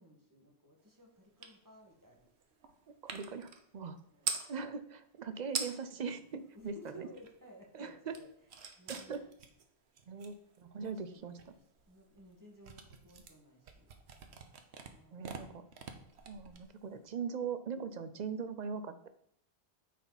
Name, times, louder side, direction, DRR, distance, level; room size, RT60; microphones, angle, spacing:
voice 1, 0.0-2.7 4.0-4.3 6.5-8.3 8.8-9.3 10.8-11.6 11.9-13.9 14.8-15.3, right 1 dB, 20° right, -2 dB, 1.6 m, -56 dB
sound 1, 1.4-1.6 1.9-4.5 5.2-5.3 5.5-6.0 6.4-7.5 7.8-17.1, right 6 dB, 80° right, 1.1 m, -44 dB
voice 2, 3.0-4.0 4.5-6.8 7.7-8.2 8.9-9.2 10.1-11.4 15.1-15.6 16.3-19.1, right 6 dB, 50° right, 11 dB, 0.6 m, -40 dB
9.3 x 4.7 x 4.0 m, 0.70 s
omnidirectional pair, 1.1 m